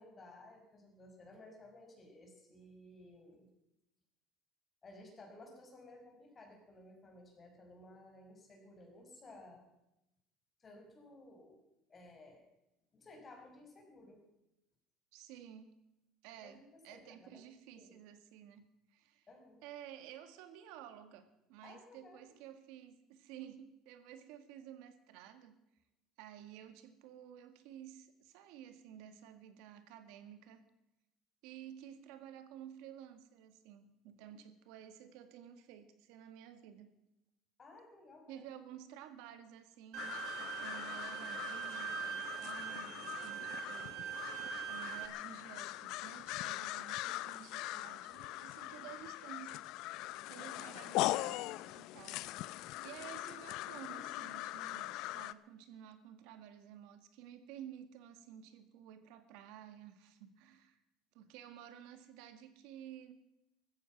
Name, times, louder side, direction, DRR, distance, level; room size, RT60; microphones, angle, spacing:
voice 1, 0.0-3.5 4.8-9.6 10.6-11.6 11.9-12.5 12.9-14.2 16.3-17.4 17.8-17.9 19.3-19.6 21.6-22.3 37.6-38.4, left 2 dB, 30° left, 2 dB, 5.6 m, -56 dB
voice 2, 15.1-15.7 16.2-19.3 19.6-25.6 26.2-30.6 31.4-36.9 38.3-44.3 44.6-49.5 50.3-52.3 52.8-60.8 61.1-63.1, right 10 dB, 80° right, 10 dB, 1.8 m, -53 dB
Bowed string instrument, 39.9-45.1, right 10 dB, 60° right, 1.2 m, -43 dB
sound 1, 40.0-55.3, left 17 dB, 70° left, 0.5 m, -41 dB
16.0 x 14.0 x 6.0 m, 0.89 s
supercardioid pair, 110°, 0 cm